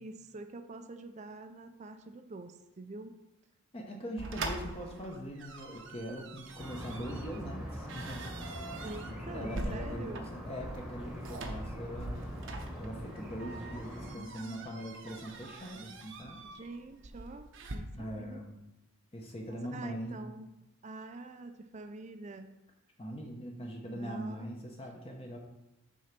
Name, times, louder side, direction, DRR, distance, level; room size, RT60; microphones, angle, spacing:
voice 1, 0.0-3.1 8.8-10.3 14.0-14.7 16.5-17.5 17.7-18.4 19.5-20.5 20.8-22.6 23.9-24.5 25.0-25.2, right 2 dB, 30° right, 7 dB, 0.4 m, -46 dB
voice 2, 3.7-8.2 9.0-12.2 12.8-16.4 17.9-18.6 19.1-20.2 23.0-25.4, equal, 25° left, 1 dB, 0.7 m, -41 dB
sound 1, 4.2-17.8, right 2 dB, 55° right, 0.8 m, -44 dB
sound 2, 6.6-14.2, equal, 5° right, 1.1 m, -43 dB
6.4 x 3.9 x 5.9 m, 0.91 s
head